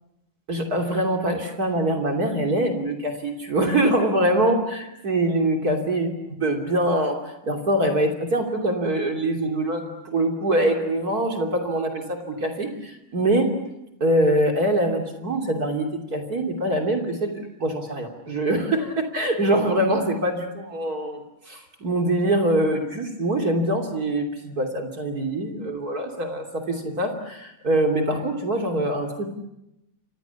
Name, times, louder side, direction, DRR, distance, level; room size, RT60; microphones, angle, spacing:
voice 1, 0.5-7.2 7.4-13.5 14.0-29.3, right 1 dB, 45° right, 3 dB, 3.5 m, -24 dB
29.5 x 26.5 x 7.1 m, 0.86 s
omnidirectional pair, 2.3 m